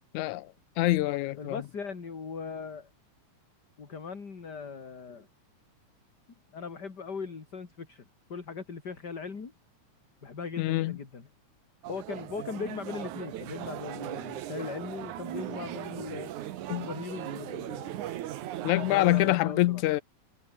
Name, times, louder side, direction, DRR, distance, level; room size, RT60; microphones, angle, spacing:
voice 1, 0.1-1.6 10.6-11.0 16.7-16.9 18.6-20.0, left 17 dB, 85° left, 2.1 m, -26 dB
voice 2, 1.4-2.9 3.8-5.3 6.5-8.0 8.3-9.5 10.2-11.3 11.9-16.3 16.8-18.0 18.8-19.8, left 5 dB, 35° left, 3.1 m, -39 dB
sound 1, 11.8-19.4, right 13 dB, 85° right, 2.7 m, -38 dB
omnidirectional pair, 3.4 m